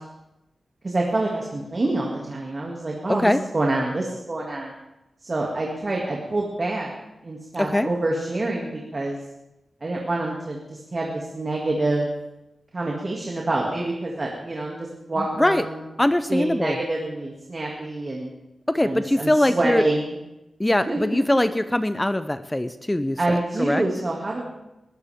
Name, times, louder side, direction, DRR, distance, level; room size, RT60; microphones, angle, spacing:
voice 1, 0.8-4.7 5.2-6.9 7.2-9.2 9.8-12.1 12.7-15.8 16.3-18.3 18.8-20.2 20.7-21.4 23.2-24.4, right 2 dB, 40° right, -1 dB, 2.3 m, -27 dB
voice 2, 3.1-3.4 7.6-7.9 15.2-15.7 16.0-16.8 18.7-19.9 20.6-23.8, left 1 dB, 15° left, 11 dB, 0.5 m, -22 dB
21.5 x 13.5 x 3.6 m, 0.95 s
wide cardioid pair, 85°, 0 cm